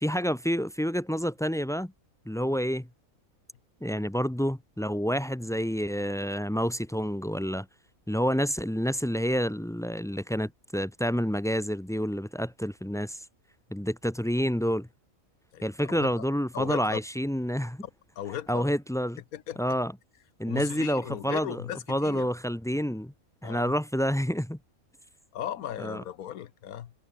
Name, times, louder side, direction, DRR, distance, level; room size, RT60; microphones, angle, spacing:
voice 1, 0.0-1.9 2.3-2.9 3.8-7.7 8.1-13.2 13.7-14.9 15.6-17.8 18.5-19.2 19.6-19.9 20.4-21.6 21.9-23.1 23.4-24.6 25.8-26.0, equal, 5° left, 0.3 m, -28 dB
voice 2, 15.5-16.2 16.5-17.0 18.2-18.7 19.3-19.8 20.5-22.3 23.4-23.7 25.3-26.9, left 10 dB, 80° left, 1.4 m, -37 dB
omnidirectional pair, 1.5 m